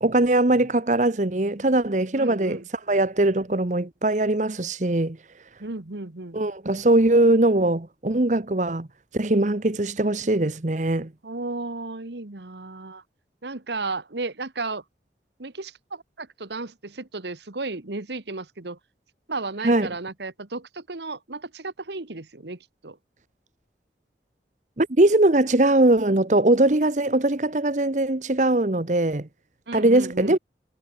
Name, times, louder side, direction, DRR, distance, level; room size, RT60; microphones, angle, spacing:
voice 1, 0.0-2.6 2.9-5.2 6.3-8.9 9.1-11.1 19.6-19.9 24.8-29.3 29.7-30.4, right 2 dB, 45° right, 1.0 m, -21 dB
voice 2, 2.2-2.7 5.6-6.4 11.2-13.0 13.4-14.8 15.4-18.8 19.3-23.0 29.7-30.4, right 3 dB, 80° right, 1.5 m, -34 dB
head